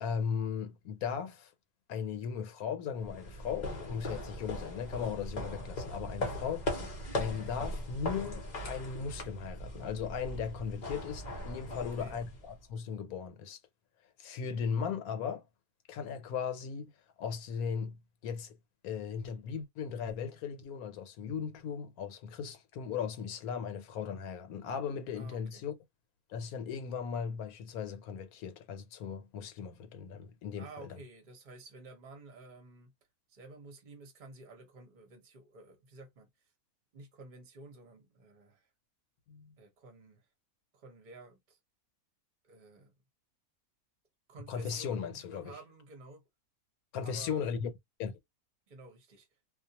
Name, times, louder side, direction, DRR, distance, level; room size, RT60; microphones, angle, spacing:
voice 1, 0.0-1.5 1.9-6.9 7.2-13.6 14.2-15.5 15.9-16.9 17.2-18.6 18.8-25.7 26.3-31.0 39.3-39.5 44.5-45.5 46.9-47.7 48.0-48.2, left 7 dB, 80° left, 1.1 m, -37 dB
sound 1, 3.0-12.6, left 1 dB, 40° left, 0.7 m, -39 dB
voice 2, 11.8-12.2 25.2-25.6 30.6-32.9 33.3-36.3 36.9-38.7 39.6-40.3 40.7-41.6 42.4-42.9 44.3-46.2 47.0-47.5 48.7-49.3, right 3 dB, 40° right, 0.9 m, -52 dB
2.4 x 2.3 x 2.8 m
omnidirectional pair, 1.5 m